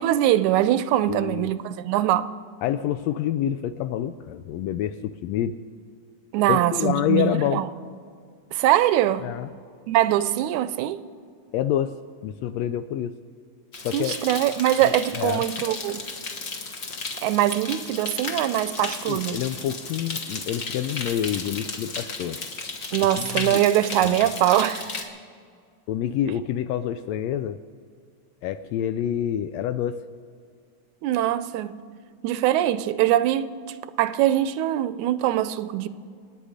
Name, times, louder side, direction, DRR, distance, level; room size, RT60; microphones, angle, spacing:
voice 1, 0.0-2.3 6.3-7.7 8.5-9.3 9.9-11.0 13.9-16.0 17.2-19.4 22.9-25.1 31.0-31.8 32.2-33.5 34.0-35.9, right 13 dB, 85° right, 2.0 m, -22 dB
voice 2, 1.1-1.5 2.6-5.5 6.5-7.6 9.2-9.5 11.5-11.9 12.2-13.1 13.8-14.2 15.1-15.4 19.1-22.4 23.2-23.6 24.0-24.2 25.9-27.6 28.4-30.0, left 10 dB, 80° left, 1.6 m, -27 dB
sound 1, 13.7-25.0, left 3 dB, 45° left, 1.1 m, -34 dB
27.5 x 9.6 x 5.0 m
omnidirectional pair, 3.4 m